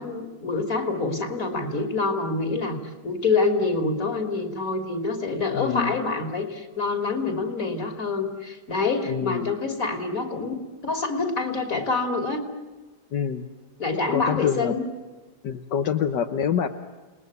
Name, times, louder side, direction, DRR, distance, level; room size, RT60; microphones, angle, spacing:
voice 1, 0.0-2.8 3.0-10.6 10.8-12.4 13.8-14.9, left 3 dB, 55° left, 6 dB, 3.4 m, -26 dB
voice 2, 5.5-6.0 9.1-9.5 13.1-13.5 14.1-14.8 15.4-16.7, left 7 dB, 85° left, 6 dB, 1.7 m, -26 dB
30.0 x 20.5 x 9.7 m, 1.3 s
omnidirectional pair, 1.8 m